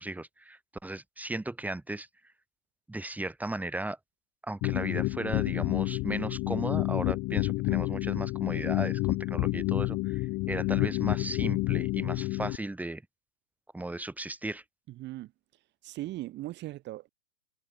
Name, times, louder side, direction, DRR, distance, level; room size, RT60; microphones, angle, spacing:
voice 1, 0.0-2.1 2.9-4.0 4.4-13.0 13.7-14.6, right 2 dB, 5° right, 6.2 m, -36 dB
sound 1, 4.6-12.6, left 22 dB, 30° left, 1.8 m, -29 dB
voice 2, 14.9-17.1, right 16 dB, 30° right, 3.1 m, -40 dB
hypercardioid pair, 120°, 36 cm